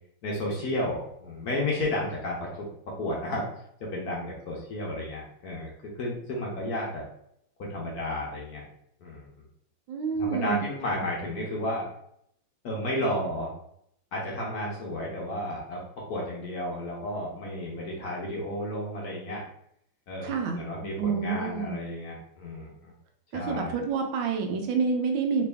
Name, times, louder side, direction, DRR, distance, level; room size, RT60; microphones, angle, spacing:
voice 1, 0.2-2.7 3.0-3.5 3.8-5.7 6.0-7.0 7.6-8.6 9.0-9.3 10.1-11.9 12.6-13.5 14.1-15.8 16.1-19.4 20.1-22.9 23.3-23.8, left 1 dB, 60° left, -3 dB, 1.1 m, -32 dB
voice 2, 9.9-10.6 20.2-20.6 21.0-21.8 23.3-25.4, right 5 dB, 75° right, 3 dB, 1.3 m, -28 dB
3.4 x 2.9 x 3.4 m, 0.73 s
omnidirectional pair, 2.2 m